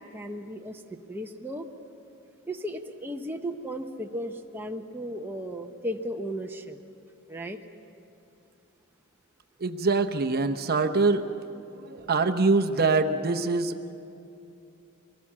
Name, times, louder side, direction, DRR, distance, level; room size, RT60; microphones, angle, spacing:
voice 1, 0.0-1.7 2.5-6.8 7.3-7.6, equal, 10° right, 2 dB, 0.8 m, -35 dB
voice 2, 9.6-13.9, right 3 dB, 45° right, 7 dB, 0.8 m, -25 dB
23.5 x 18.5 x 7.4 m, 2.7 s
head